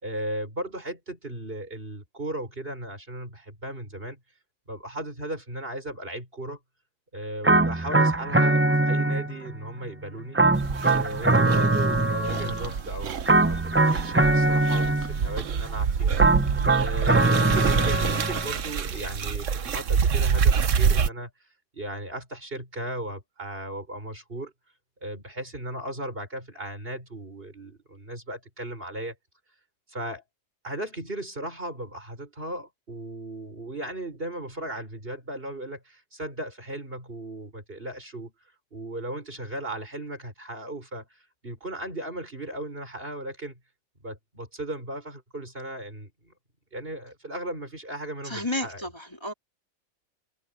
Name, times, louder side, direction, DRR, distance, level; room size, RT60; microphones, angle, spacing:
voice 1, 0.0-4.2 4.7-6.6 7.1-10.4 10.9-16.2 16.8-21.3 21.7-24.5 25.0-29.2 29.9-30.2 30.6-38.3 38.7-43.6 44.0-46.3 46.7-48.9, right 1 dB, 40° right, 5.9 m, -36 dB
sound 1, 7.4-9.5 10.3-12.7 13.3-15.3 16.2-18.6, right 2 dB, 15° right, 0.4 m, -22 dB
sound 2, 10.5-21.1, right 6 dB, 65° right, 1.3 m, -27 dB
voice 2, 48.2-49.3, left 1 dB, 20° left, 3.3 m, -32 dB
omnidirectional pair, 1.5 m